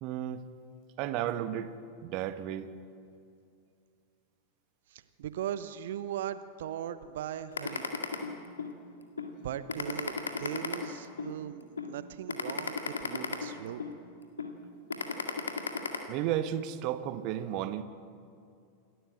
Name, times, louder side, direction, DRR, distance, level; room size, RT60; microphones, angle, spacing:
voice 1, 0.0-0.4 1.0-1.7 2.0-2.7 16.1-17.8, right 11 dB, 40° right, 12 dB, 1.2 m, -33 dB
voice 2, 4.9-7.9 9.4-10.1 10.4-13.8, right 10 dB, 55° right, 13 dB, 0.9 m, -38 dB
sound 1, 7.6-8.7 9.2-9.3 9.7-11.3 11.8-11.9 12.3-13.9 14.4-14.5 14.9-16.0, left 5 dB, 70° left, 1.9 m, -34 dB
27.5 x 12.5 x 7.9 m, 2.4 s
figure-of-eight pair, 90°, 0 cm